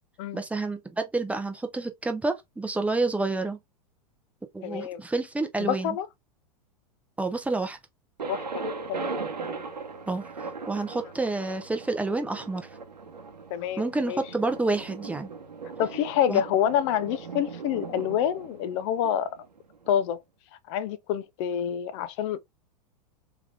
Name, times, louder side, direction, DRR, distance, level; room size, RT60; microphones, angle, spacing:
voice 1, 0.3-3.6 4.5-6.0 7.2-7.8 10.1-10.2 10.7-12.7 13.8-15.3 16.3-16.4, right 3 dB, 5° right, 0.5 m, -29 dB
voice 2, 4.6-5.0 5.6-6.1 8.3-8.5 8.9-9.1 13.5-14.2 15.8-19.4 19.9-20.2 20.7-22.4, left 9 dB, 45° left, 0.4 m, -27 dB
Thunder, 8.2-20.0, right 4 dB, 90° right, 0.9 m, -39 dB
3.4 x 3.4 x 2.5 m
hypercardioid pair, 95°, 21 cm